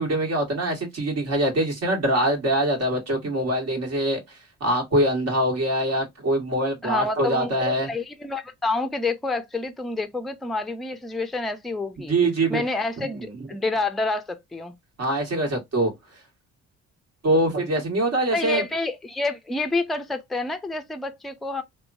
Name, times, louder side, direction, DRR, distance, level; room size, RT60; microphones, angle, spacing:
voice 1, 0.0-7.9 12.0-12.6 13.0-13.4 15.0-15.9 17.2-18.6, right 1 dB, 55° right, 1.5 m, -24 dB
voice 2, 6.8-12.1 12.5-14.7 18.3-21.6, left 3 dB, ahead, 0.4 m, -28 dB
3.0 x 2.2 x 2.5 m
cardioid pair, 90°, 30 cm